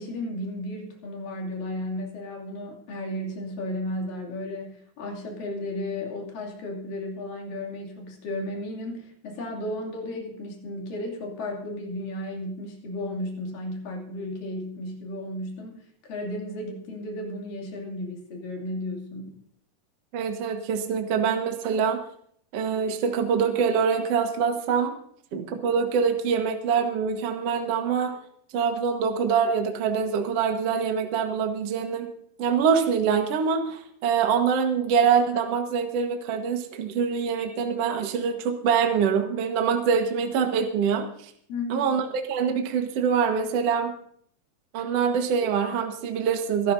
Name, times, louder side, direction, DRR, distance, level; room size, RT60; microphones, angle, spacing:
voice 1, 0.0-19.3 41.5-41.9, left 1 dB, 55° left, 0 dB, 4.1 m, -34 dB
voice 2, 20.1-22.0 22.5-25.0 25.3-28.2 28.5-32.1 32.4-41.3 41.7-43.9 44.7-46.7, right 6 dB, 70° right, 4 dB, 1.4 m, -24 dB
26.0 x 12.0 x 2.7 m, 0.64 s
omnidirectional pair, 5.0 m